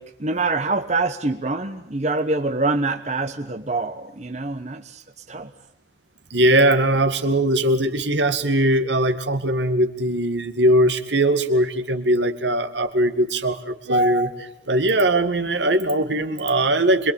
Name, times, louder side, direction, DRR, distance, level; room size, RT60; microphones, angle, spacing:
voice 1, 0.0-5.5, right 3 dB, 40° right, 6 dB, 1.1 m, -25 dB
voice 2, 6.3-17.1, right 1 dB, 75° right, 8 dB, 2.1 m, -20 dB
26.5 x 22.5 x 8.6 m, 0.73 s
head